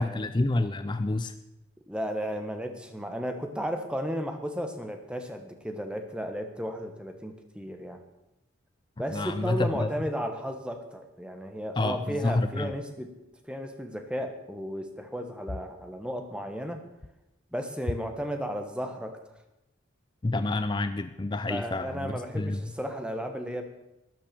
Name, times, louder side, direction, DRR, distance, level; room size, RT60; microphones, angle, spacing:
voice 1, 0.0-1.3 9.1-9.9 11.8-12.7 20.2-22.7, left 2 dB, 25° left, 10 dB, 0.4 m, -28 dB
voice 2, 1.9-8.0 9.0-13.1 13.5-16.8 17.5-19.2 21.5-23.6, equal, 5° right, 5 dB, 1.3 m, -34 dB
13.5 x 10.0 x 6.9 m, 0.93 s
head